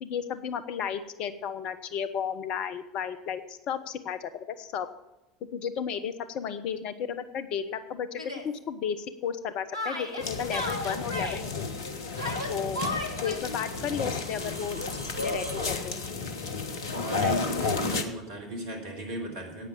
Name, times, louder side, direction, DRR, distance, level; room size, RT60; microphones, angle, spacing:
voice 1, 0.0-4.9 5.5-11.7 12.5-12.8 13.2-16.0, left 7 dB, 45° left, 12 dB, 1.0 m, -33 dB
Yell, 8.2-8.5 9.7-11.4 12.2-13.4, left 1 dB, 85° right, 1.5 m, -34 dB
sound 1, 10.1-15.8, right 1 dB, 90° left, 2.8 m, -45 dB
sound 2, 10.2-18.0, left 4 dB, 65° left, 1.3 m, -32 dB
voice 2, 16.9-19.7, right 1 dB, 60° right, 2 dB, 3.3 m, -36 dB
10.5 x 9.1 x 7.3 m, 0.97 s
figure-of-eight pair, 75°, 2 cm